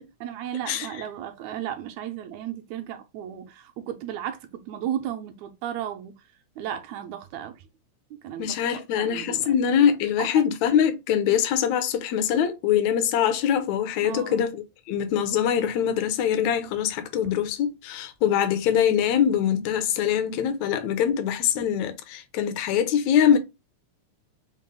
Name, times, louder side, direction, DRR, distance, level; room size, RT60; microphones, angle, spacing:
voice 1, 0.2-6.2 6.6-7.6 8.1-9.5 10.2-10.4 14.0-14.4, right 10 dB, 80° right, 1.9 m, -34 dB
voice 2, 8.4-23.4, left 9 dB, 75° left, 1.9 m, -23 dB
5.4 x 2.0 x 3.7 m
omnidirectional pair, 3.3 m